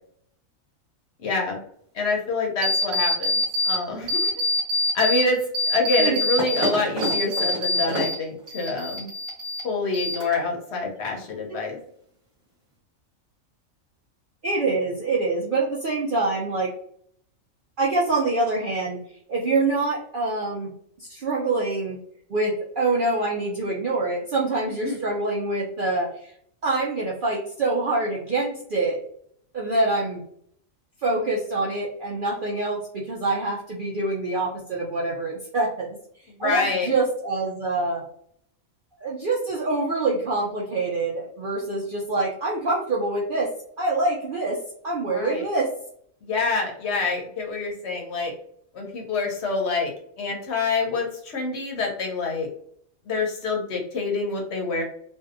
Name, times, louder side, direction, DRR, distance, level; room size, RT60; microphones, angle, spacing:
voice 1, 1.2-1.6 1.9-4.3 4.9-5.4 5.7-9.1 9.6-11.8 24.7-25.0 36.4-36.9 45.1-45.5 46.2-48.3 48.7-49.9 50.2-52.5 53.1-54.8, left 3 dB, 60° left, 0 dB, 0.9 m, -26 dB
sound 1, 2.6-3.8 4.1-5.2 5.5-8.2 8.5-9.6 9.9-10.5, left 1 dB, 35° right, 1.0 m, -24 dB
voice 2, 14.4-16.7 17.8-19.0 19.3-20.7 21.0-22.0 22.3-26.3 26.6-29.0 29.5-30.2 31.0-36.0 36.4-38.0 39.0-43.5 43.8-44.6 44.8-45.7, right 2 dB, 65° right, -4 dB, 0.5 m, -25 dB
2.6 x 2.3 x 2.4 m, 0.65 s
omnidirectional pair, 1.4 m